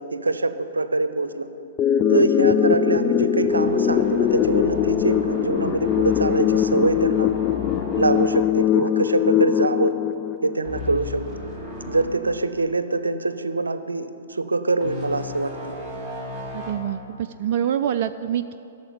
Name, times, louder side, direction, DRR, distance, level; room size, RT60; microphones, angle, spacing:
voice 1, 0.0-1.5 2.1-7.3 8.0-10.0 10.4-11.2 11.9-15.7, right 3 dB, 80° right, 12 dB, 0.7 m, -24 dB
sound 1, 1.8-10.8, left 9 dB, 30° left, 0.3 m, -21 dB
sound 2, 3.5-9.6 9.8-10.1 10.6-12.1 12.6-12.7 14.8-16.7, left 2 dB, 5° right, 4.0 m, -35 dB
voice 2, 16.5-18.6, right 9 dB, 45° right, 9 dB, 0.3 m, -26 dB
13.0 x 7.3 x 9.6 m, 2.8 s
figure-of-eight pair, 115°, 0 cm